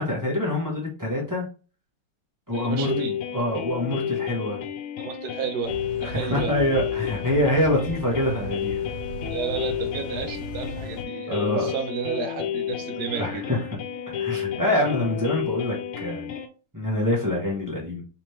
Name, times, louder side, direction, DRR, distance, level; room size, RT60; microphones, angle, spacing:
voice 1, 0.0-1.4 2.5-2.9 3.3-4.6 6.0-8.9 11.3-11.7 13.1-13.6 14.1-16.3 16.7-18.0, left 1 dB, 20° right, -3 dB, 0.5 m, -25 dB
sound 1, 2.5-16.5, left 9 dB, 90° left, 1.5 m, -31 dB
voice 2, 2.5-3.2 5.0-6.5 7.0-7.1 9.3-13.4, right 6 dB, 75° right, 4 dB, 0.8 m, -32 dB
sound 2, 5.6-11.0, left 1 dB, 65° left, 2.0 m, -37 dB
4.1 x 3.0 x 3.2 m, 0.34 s
omnidirectional pair, 2.4 m